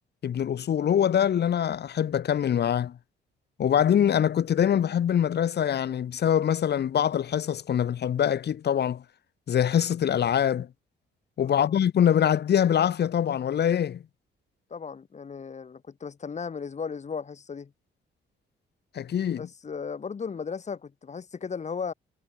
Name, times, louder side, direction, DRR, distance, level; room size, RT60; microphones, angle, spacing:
voice 1, 0.2-3.0 3.6-9.0 9.5-10.7 11.4-14.0 18.9-19.4, left 9 dB, 55° left, 1.8 m, -24 dB
voice 2, 11.4-11.8 14.7-17.7 19.4-21.9, left 6 dB, 35° left, 1.6 m, -36 dB
cardioid pair, 90°, 20 cm